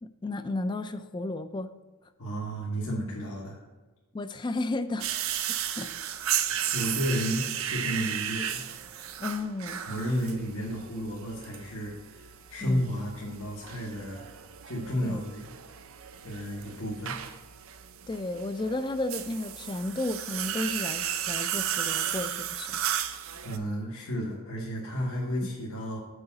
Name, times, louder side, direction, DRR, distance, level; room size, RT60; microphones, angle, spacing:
voice 1, 0.0-1.7 4.1-5.1 5.5-5.9 9.2-9.8 12.6-12.9 15.0-15.2 18.1-22.8, left 2 dB, 20° left, 11 dB, 0.3 m, -33 dB
voice 2, 2.2-3.6 6.5-8.6 9.9-14.2 14.6-15.5 16.2-17.2 23.4-26.0, equal, 70° left, -4 dB, 1.2 m, -32 dB
sound 1, 5.0-23.6, right 10 dB, 65° right, 0.5 m, -34 dB
6.7 x 4.7 x 5.7 m, 1.2 s
head